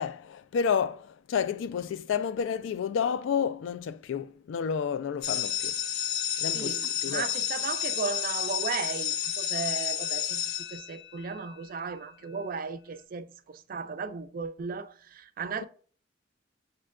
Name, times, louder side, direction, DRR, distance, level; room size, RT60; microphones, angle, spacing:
voice 1, 0.0-5.7 6.4-7.2, left 7 dB, 80° left, 0.3 m, -30 dB
sound 1, 5.2-11.4, left 10 dB, 55° left, 0.7 m, -31 dB
voice 2, 6.5-10.4 10.7-15.6, right 5 dB, 45° right, 0.4 m, -35 dB
6.4 x 2.2 x 2.3 m
head